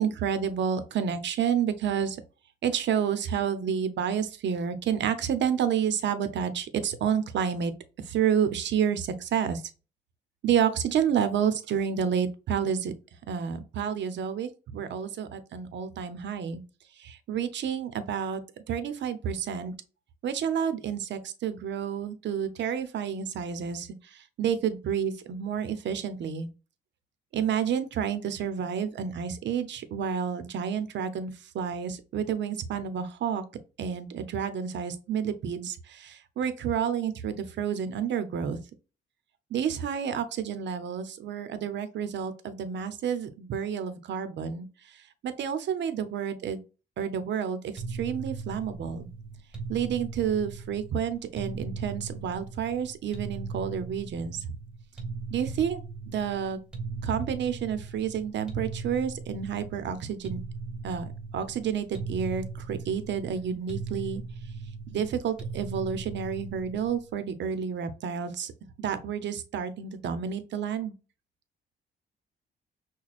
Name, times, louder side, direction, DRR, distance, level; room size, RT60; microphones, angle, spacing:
voice 1, 0.0-2.2 2.6-7.7 8.1-9.6 10.4-12.9 13.3-16.6 17.0-18.4 18.7-19.7 20.2-23.9 24.4-26.5 27.3-33.4 33.8-38.6 39.5-44.7 45.2-46.6 47.0-49.1 49.7-54.4 55.3-55.8 56.1-56.6 57.0-60.4 60.8-64.2 64.9-68.5 68.8-70.9, right 8 dB, 65° right, 0.8 m, -30 dB
sound 1, 47.8-67.1, right 4 dB, 5° right, 1.6 m, -39 dB
6.0 x 2.2 x 2.4 m
cardioid pair, 90°, 20 cm